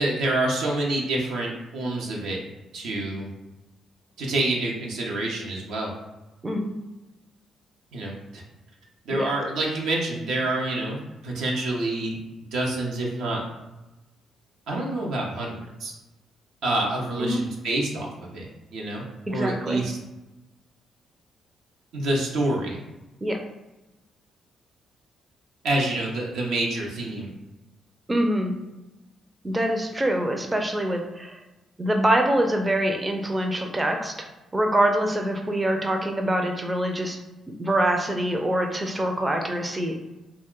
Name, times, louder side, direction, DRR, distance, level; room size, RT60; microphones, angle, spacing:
voice 1, 0.0-2.4 2.7-3.3 4.2-5.9 7.9-8.4 9.1-12.2 12.5-13.4 14.7-15.9 16.6-18.5 18.7-20.0 21.9-22.8 25.6-27.3, right 2 dB, 80° right, -2 dB, 0.6 m, -27 dB
voice 2, 6.4-6.7 9.1-9.3 17.2-17.4 19.3-19.8 23.2-23.4 28.1-28.5 29.4-31.4 31.8-34.3 34.5-37.2 37.6-40.0, right 1 dB, 20° right, 3 dB, 0.4 m, -24 dB
2.5 x 2.1 x 3.6 m, 1.0 s
supercardioid pair, 70°, 0 cm